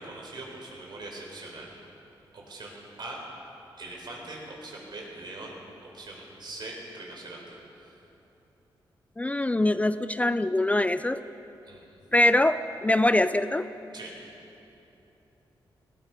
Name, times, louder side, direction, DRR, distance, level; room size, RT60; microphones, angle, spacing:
voice 1, 0.0-1.7 2.3-2.7 3.0-3.2 3.8-5.6 5.9-7.4 7.8-8.0 11.7-11.9 13.9-14.1, right 2 dB, 60° right, -1 dB, 4.2 m, -41 dB
voice 2, 9.2-11.2 12.1-13.7, left 1 dB, 15° left, 12 dB, 0.4 m, -23 dB
19.5 x 14.0 x 5.3 m, 3.0 s
cardioid pair, 65°, 9 cm